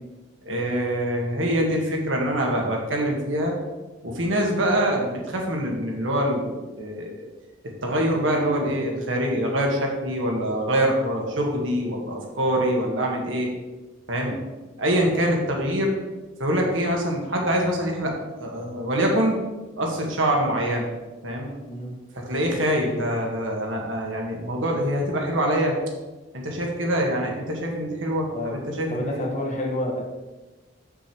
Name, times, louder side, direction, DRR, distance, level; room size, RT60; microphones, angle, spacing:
voice 1, 0.4-3.6 4.0-7.3 7.8-13.5 14.1-14.4 14.8-15.9 16.4-18.1 18.4-19.4 19.8-20.9 21.2-21.5 22.1-25.8 26.3-29.2, equal, 80° right, 0 dB, 1.9 m, -24 dB
voice 2, 28.9-30.0, left 1 dB, 40° left, 0 dB, 1.5 m, -29 dB
7.2 x 6.8 x 4.6 m, 1.2 s
head